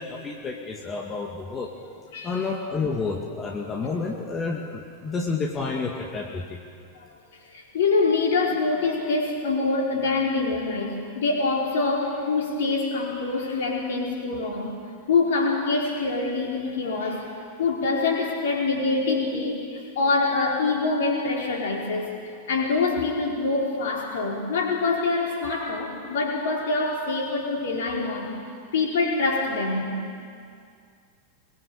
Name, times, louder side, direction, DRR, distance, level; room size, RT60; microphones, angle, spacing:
voice 1, 0.0-1.7 2.2-6.6, left 4 dB, 20° left, 1 dB, 2.2 m, -30 dB
voice 2, 7.5-14.8 15.1-17.3 17.6-28.4 28.7-30.0, left 3 dB, 60° left, -1 dB, 4.9 m, -25 dB
24.5 x 22.0 x 7.1 m, 2.2 s
figure-of-eight pair, 90°, 0 cm